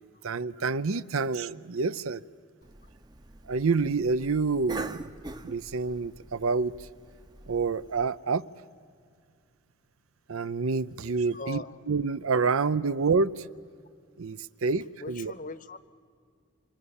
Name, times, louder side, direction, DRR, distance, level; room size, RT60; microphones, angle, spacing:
voice 1, 0.2-2.2 3.5-5.1 5.4-6.7 7.5-8.4 10.3-13.4 14.2-15.3, right 4 dB, 85° right, 16 dB, 0.6 m, -28 dB
Cough, 2.6-8.1, right 2 dB, 20° right, 0.6 m, -44 dB
voice 2, 11.3-11.8 12.9-13.0 15.0-15.8, left 3 dB, 40° left, 15 dB, 0.8 m, -39 dB
28.5 x 25.5 x 7.1 m, 2.1 s
head